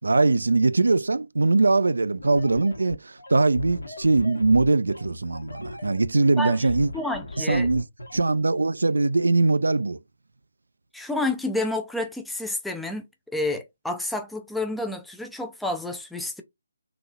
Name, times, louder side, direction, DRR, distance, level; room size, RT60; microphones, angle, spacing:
voice 1, 0.0-6.9 7.4-7.8 8.1-10.0, right 3 dB, 70° right, 0.3 m, -21 dB
sound 1, 2.2-8.2, left 3 dB, 75° left, 1.0 m, -38 dB
voice 2, 6.4-6.7 6.9-7.7 10.9-16.4, left 2 dB, ahead, 0.4 m, -30 dB
3.9 x 2.7 x 2.4 m
figure-of-eight pair, 145°, 0 cm